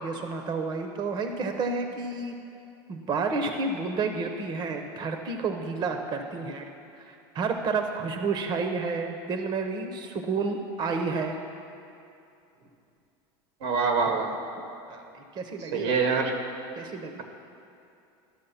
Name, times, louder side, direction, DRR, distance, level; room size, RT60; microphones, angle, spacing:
voice 1, 0.0-2.4 2.9-6.7 7.0-11.4 14.6-16.0 16.8-17.2, right 4 dB, 35° right, 5 dB, 0.7 m, -30 dB
voice 2, 13.6-14.3 15.7-16.3, right 5 dB, 85° right, 4 dB, 1.4 m, -25 dB
12.0 x 6.3 x 5.7 m, 2.6 s
supercardioid pair, 115°, 13 cm